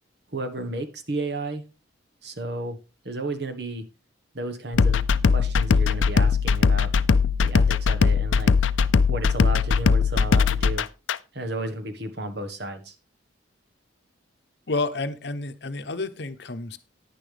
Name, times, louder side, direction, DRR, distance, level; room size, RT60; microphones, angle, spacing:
voice 1, 0.3-1.6 2.2-2.8 3.0-3.8 4.3-5.0 5.3-6.9 7.4-8.7 9.1-10.9 11.3-12.9, right 2 dB, 55° right, 7 dB, 1.4 m, -32 dB
sound 1, 4.7-11.2, left 5 dB, 80° left, 0.5 m, -20 dB
voice 2, 14.7-16.8, left 3 dB, 60° left, 10 dB, 0.8 m, -30 dB
10.0 x 10.0 x 3.4 m, 0.29 s
head